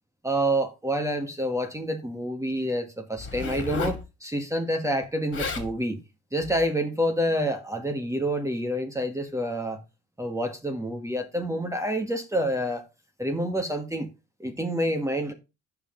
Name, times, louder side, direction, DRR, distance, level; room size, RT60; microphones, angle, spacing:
voice 1, 0.2-6.0 6.3-9.8 10.2-12.8 13.2-14.1 14.4-15.3, equal, 10° right, 1.5 m, -28 dB
Zipper (clothing), 3.2-4.0 5.0-5.1 5.3-5.7 6.4-6.6, left 4 dB, 40° left, 2.4 m, -32 dB
9.7 x 6.0 x 3.8 m
cardioid pair, 90°, 30 cm